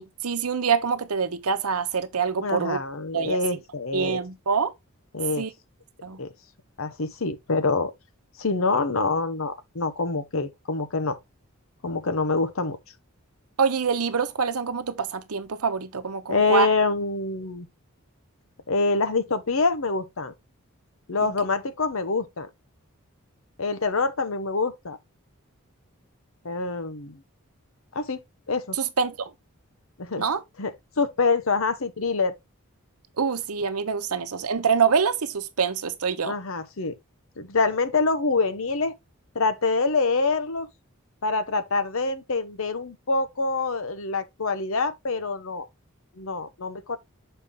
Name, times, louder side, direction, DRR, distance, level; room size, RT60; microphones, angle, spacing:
voice 1, 0.0-2.8 3.1-3.4 3.9-4.7 5.4-5.5 6.0-6.2 13.6-16.7 28.8-29.3 30.2-30.4 33.2-36.3, right 6 dB, 85° right, 0.8 m, -25 dB
voice 2, 2.4-4.2 5.1-5.4 6.2-6.3 6.8-7.9 8.4-11.2 11.8-12.8 16.3-17.7 18.7-20.3 21.1-22.5 23.6-25.0 26.4-27.2 27.9-28.2 28.5-28.8 30.0-30.2 30.6-32.3 36.2-37.0 37.4-38.9 39.3-40.7 41.2-45.7 46.1-47.0, left 3 dB, 65° left, 0.9 m, -26 dB
6.8 x 4.5 x 3.6 m
head